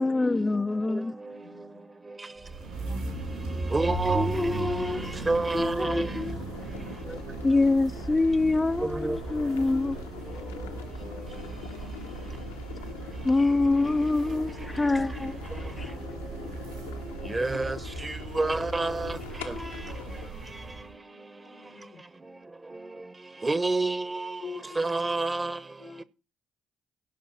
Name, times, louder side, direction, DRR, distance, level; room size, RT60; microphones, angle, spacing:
voice 1, 0.0-1.2 4.1-5.3 5.5-6.4 7.4-10.0 13.2-15.4 15.8-15.9, left 3 dB, 20° left, 0.4 m, -25 dB
voice 2, 1.2-1.9 3.8-4.0 9.4-9.8 10.3-12.4 14.7-15.1 15.7-16.0 16.5-16.7 18.5-18.6 19.1-22.0 24.4-24.8 25.8-26.0, left 7 dB, 55° left, 0.9 m, -48 dB
sound 1, 2.4-20.9, right 3 dB, 75° right, 7.0 m, -37 dB
voice 3, 3.7-4.3 5.3-6.1 9.0-9.2 17.3-17.8 18.4-19.1 23.4-24.2 24.8-25.6, right 3 dB, 25° right, 1.1 m, -27 dB
sound 2, 4.8-20.3, left 9 dB, 85° left, 0.9 m, -44 dB
17.0 x 6.1 x 4.0 m
hypercardioid pair, 50°, 0 cm